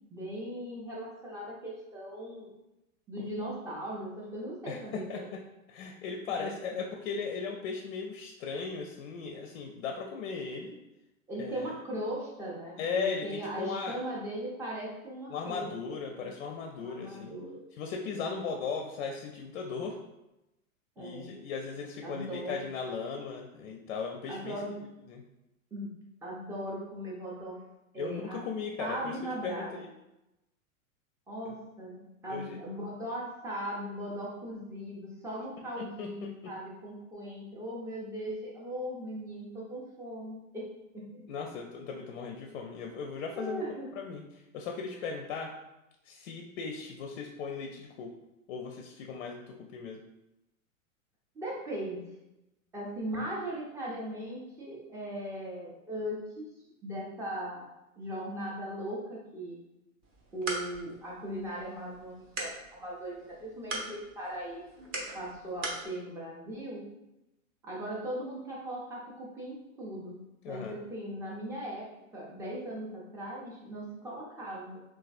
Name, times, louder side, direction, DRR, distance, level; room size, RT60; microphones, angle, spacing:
voice 1, 0.1-2.5 3.1-5.4 6.3-6.8 11.3-15.7 16.1-16.3 16.8-17.6 18.0-18.3 21.0-21.3 22.0-22.6 24.3-24.8 25.7-25.9 26.2-27.6 27.9-28.5 28.8-29.8 31.3-41.2 43.3-43.9 45.0-45.1 51.3-52.0 52.7-56.5 56.8-57.7 58.0-59.6 60.3-64.9 65.1-66.9 67.6-71.9 72.1-74.8, right 1 dB, 5° right, -4 dB, 0.4 m, -39 dB
voice 2, 4.7-5.4 5.7-10.8 11.4-11.7 12.8-14.0 15.3-17.4 17.7-20.0 21.0-24.6 25.1-25.2 28.0-29.2 29.4-29.9 31.4-31.5 32.3-32.6 35.8-36.1 41.3-43.7 44.0-44.2 44.5-45.5 46.1-48.1 48.5-50.0 70.4-70.8, left 5 dB, 55° left, 2 dB, 0.4 m, -37 dB
sound 1, 60.0-65.9, right 2 dB, 45° right, 0.8 m, -41 dB
3.1 x 2.3 x 2.4 m, 0.93 s
hypercardioid pair, 105°, 42 cm